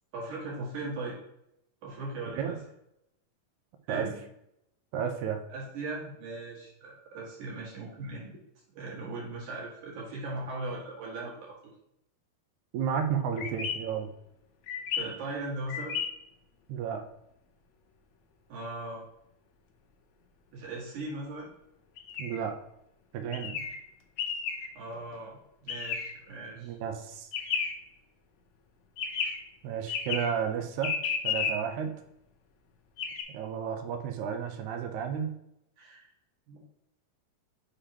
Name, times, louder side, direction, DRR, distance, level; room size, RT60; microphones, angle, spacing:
voice 1, 0.1-1.2 1.8-2.6 3.9-4.2 5.5-8.3 8.7-11.5 14.9-16.0 18.5-19.0 20.5-21.5 24.7-25.3 25.6-26.8 35.8-36.1 36.5-36.6, right 2 dB, 60° right, -5 dB, 3.3 m, -38 dB
voice 2, 4.9-5.4 12.7-14.1 16.7-17.0 22.2-22.6 23.1-23.6 26.6-27.3 29.6-31.0 31.2-31.9 33.3-35.3, right 7 dB, 90° right, 6 dB, 1.7 m, -32 dB
sound 1, 13.4-13.8 14.7-15.0 15.7-16.1 22.0-22.4 23.3-23.8 24.2-24.7 25.7-26.1 27.3-27.7 29.0-29.4 29.9-30.3 30.8-31.5 33.0-33.2, left 7 dB, 85° left, 1.5 m, -32 dB
6.6 x 4.9 x 2.9 m, 0.80 s
omnidirectional pair, 4.2 m